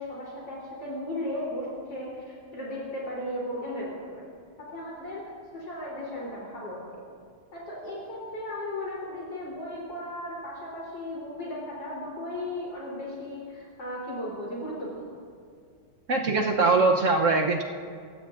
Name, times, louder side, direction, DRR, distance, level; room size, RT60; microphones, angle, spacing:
voice 1, 0.0-4.2 4.6-7.0 7.5-15.2, left 1 dB, 55° left, -5 dB, 4.2 m, -36 dB
voice 2, 16.1-17.6, right 3 dB, 65° right, 2 dB, 0.7 m, -22 dB
27.0 x 16.0 x 2.5 m, 2.1 s
omnidirectional pair, 2.4 m